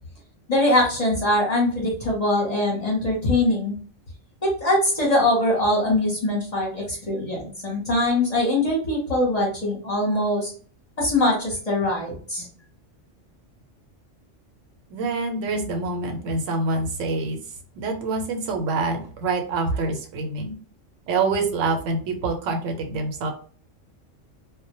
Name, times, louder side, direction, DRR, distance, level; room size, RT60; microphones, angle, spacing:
voice 1, 0.5-3.8 4.4-10.5 11.0-12.5, left 1 dB, 35° left, -3 dB, 0.8 m, -22 dB
voice 2, 14.9-17.4 17.8-20.5 21.1-23.3, right 3 dB, 80° right, 3 dB, 0.9 m, -26 dB
2.1 x 2.1 x 2.8 m, 0.43 s
omnidirectional pair, 1.3 m